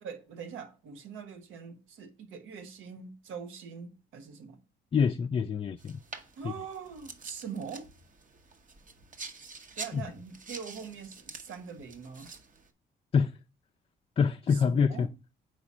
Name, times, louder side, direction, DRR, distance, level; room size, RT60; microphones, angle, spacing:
voice 1, 0.0-4.6 6.4-7.9 9.8-12.3 14.5-15.1, right 6 dB, 90° right, 1.1 m, -43 dB
voice 2, 4.9-6.0 6.4-6.5 9.9-10.0 13.1-13.4 14.2-15.1, left 6 dB, 30° left, 0.4 m, -26 dB
sound 1, 5.8-12.7, right 4 dB, 40° right, 1.0 m, -47 dB
4.9 x 4.2 x 6.0 m
cardioid pair, 90°, 20 cm